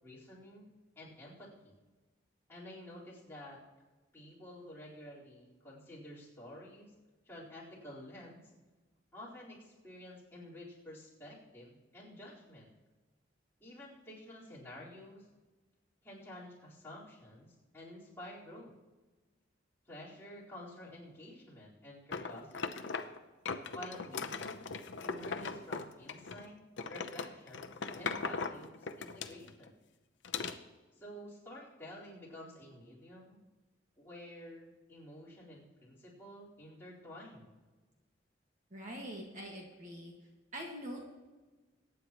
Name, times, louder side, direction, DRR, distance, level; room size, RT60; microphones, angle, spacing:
voice 1, 0.0-0.7 1.0-1.7 2.5-3.6 4.1-6.9 7.2-8.4 9.1-12.7 13.6-15.3 16.0-18.7 19.9-23.0 23.7-24.7 25.0-27.7 27.9-29.7 30.9-33.4 34.0-37.6, left 1 dB, 10° left, -9 dB, 4.1 m, -50 dB
sound 1, 22.1-23.2 23.5-26.5 26.8-29.7 30.2-30.6, left 5 dB, 70° left, 0.7 m, -39 dB
voice 2, 38.7-40.1 40.5-41.0, equal, 40° right, -1 dB, 1.7 m, -44 dB
22.5 x 9.5 x 3.0 m, 1.2 s
head